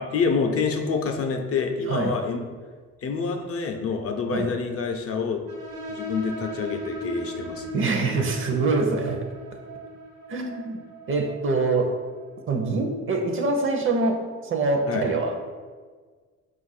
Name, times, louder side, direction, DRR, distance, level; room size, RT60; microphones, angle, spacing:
voice 1, 0.0-2.4 3.0-5.4 5.9-7.7 14.9-15.1, left 5 dB, 50° left, 4 dB, 0.5 m, -27 dB
sound 1, 5.5-12.8, right 1 dB, 75° right, 0.9 m, -38 dB
voice 2, 7.7-9.2 10.3-10.8 11.1-11.9 12.5-15.5, right 3 dB, 45° right, 4 dB, 0.6 m, -24 dB
4.2 x 2.5 x 4.0 m, 1.5 s
cardioid pair, 90°, 30 cm